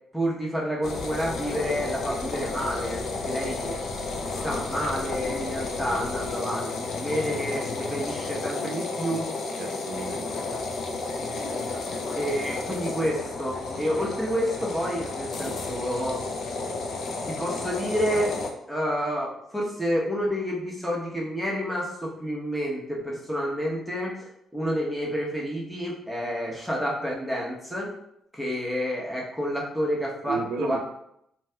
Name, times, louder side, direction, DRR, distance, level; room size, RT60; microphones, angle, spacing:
voice 1, 0.1-3.0 3.3-3.7 4.4-9.3 12.1-16.2 17.2-18.3 18.7-27.9 28.3-30.8, equal, ahead, -4 dB, 0.9 m, -29 dB
sound 1, 0.8-18.5, left 3 dB, 65° left, 0.5 m, -32 dB
voice 2, 8.6-9.0 9.5-10.3 30.3-30.8, right 4 dB, 85° right, 3 dB, 0.4 m, -33 dB
3.0 x 2.8 x 2.2 m, 0.76 s
cardioid pair, 90°, 0 cm